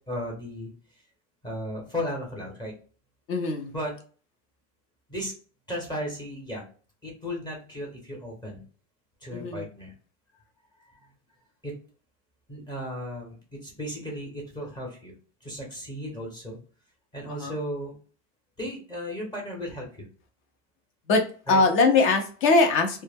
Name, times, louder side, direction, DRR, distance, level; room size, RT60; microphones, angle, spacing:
voice 1, 0.1-0.7 1.4-2.7 3.7-3.9 5.1-5.3 5.7-6.6 7.0-8.6 9.2-9.9 10.8-11.0 11.6-11.7 12.5-15.1 15.4-16.6 17.1-18.0 18.6-20.0 21.5-21.6, equal, 10° left, -1 dB, 0.9 m, -35 dB
voice 2, 3.3-3.7 9.3-9.6 17.3-17.6 21.1-23.0, left 3 dB, 35° left, 5 dB, 0.5 m, -22 dB
2.1 x 2.0 x 3.3 m, 0.40 s
supercardioid pair, 135°, 38 cm